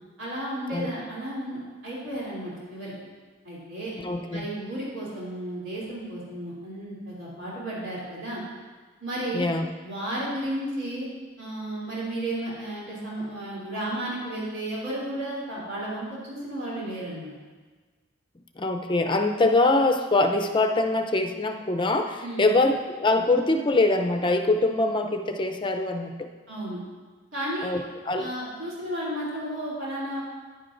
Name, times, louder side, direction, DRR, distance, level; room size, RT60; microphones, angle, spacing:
voice 1, 0.2-2.9 3.4-3.9 4.3-8.4 9.0-9.5 9.8-11.1 11.4-17.3 22.2-22.5 26.5-26.8 27.3-27.7 28.2-30.2, right 1 dB, 75° right, -7 dB, 3.1 m, -33 dB
voice 2, 3.9-4.4 9.3-9.7 18.6-26.3 27.6-28.3, left 2 dB, 25° left, 5 dB, 0.6 m, -24 dB
11.0 x 9.8 x 2.5 m, 1.4 s
head